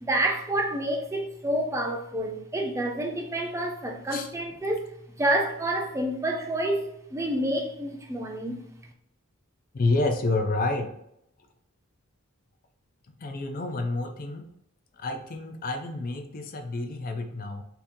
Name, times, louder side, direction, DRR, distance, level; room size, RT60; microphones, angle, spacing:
voice 1, 0.0-4.9 5.2-8.6, right 1 dB, 15° right, 0.4 m, -28 dB
voice 2, 9.7-11.0 13.2-14.5 15.0-17.6, left 2 dB, 40° left, 0.4 m, -29 dB
3.6 x 2.8 x 2.6 m
head